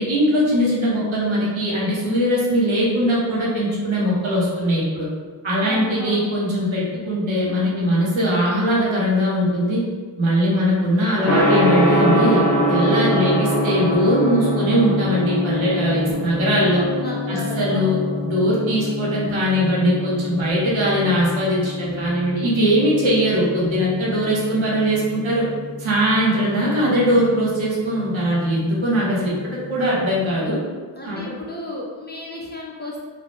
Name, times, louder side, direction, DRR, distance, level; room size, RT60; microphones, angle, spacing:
voice 1, 0.0-5.1 5.4-9.8 10.2-12.4 12.7-16.9 17.3-18.0 18.2-25.5 25.8-29.3 29.7-30.6 31.0-31.2, equal, 90° right, -7 dB, 0.9 m, -20 dB
voice 2, 5.6-6.4 16.9-18.0 31.0-33.0, left 1 dB, 25° left, -4 dB, 0.4 m, -33 dB
Gong, 11.2-30.2, equal, 30° right, 1.1 m, -25 dB
2.8 x 2.1 x 3.0 m, 1.5 s
wide cardioid pair, 75°, 46 cm